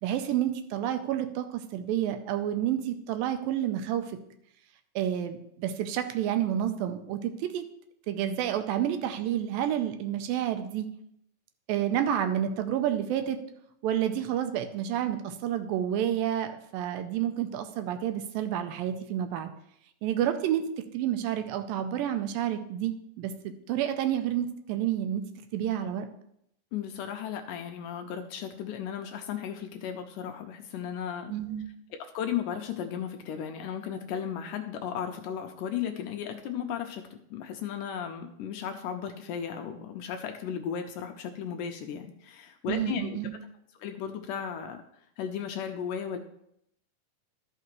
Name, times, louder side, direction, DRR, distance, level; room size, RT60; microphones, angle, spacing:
voice 1, 0.0-4.1 5.0-7.6 8.1-10.9 11.7-13.4 13.8-19.5 20.0-20.7 20.9-23.3 23.7-25.2 25.5-26.1 31.3-31.7 42.7-43.3, right 10 dB, 85° right, 8 dB, 2.4 m, -29 dB
voice 2, 26.7-31.3 31.9-37.0 37.3-43.2 43.8-44.8 45.2-46.2, left 8 dB, 80° left, 5 dB, 2.0 m, -35 dB
13.0 x 5.7 x 3.1 m, 0.73 s
omnidirectional pair, 4.1 m